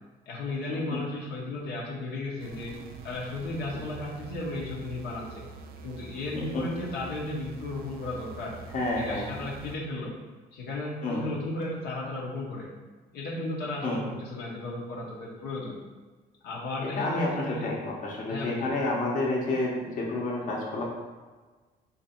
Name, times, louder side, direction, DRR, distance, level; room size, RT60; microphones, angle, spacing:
voice 1, 0.3-2.8 3.0-5.4 5.8-8.6 9.0-10.1 10.5-12.7 13.1-15.8 16.4-17.6 18.3-18.7, left 2 dB, 75° left, -4 dB, 1.0 m, -34 dB
sound 1, 2.4-9.8, right 5 dB, 60° right, 0.4 m, -45 dB
voice 2, 8.7-9.4 11.0-11.2 13.8-14.1 17.0-20.8, left 2 dB, 50° left, -3 dB, 1.1 m, -29 dB
4.3 x 2.7 x 4.3 m, 1.3 s
cardioid pair, 110°, 17 cm